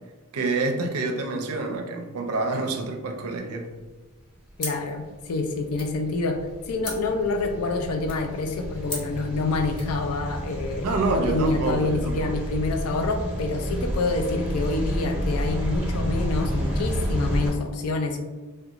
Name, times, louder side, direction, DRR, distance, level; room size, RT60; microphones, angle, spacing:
voice 1, 0.3-3.7 10.8-12.3, right 3 dB, 85° right, 3 dB, 0.4 m, -27 dB
voice 2, 4.6-6.4 6.7-18.2, left 3 dB, 85° left, 5 dB, 0.4 m, -27 dB
sound 1, 4.6-10.0, left 1 dB, 25° left, 0.8 m, -41 dB
sound 2, 4.8-17.5, equal, 10° right, 0.8 m, -30 dB
2.8 x 2.2 x 2.4 m, 1.3 s
head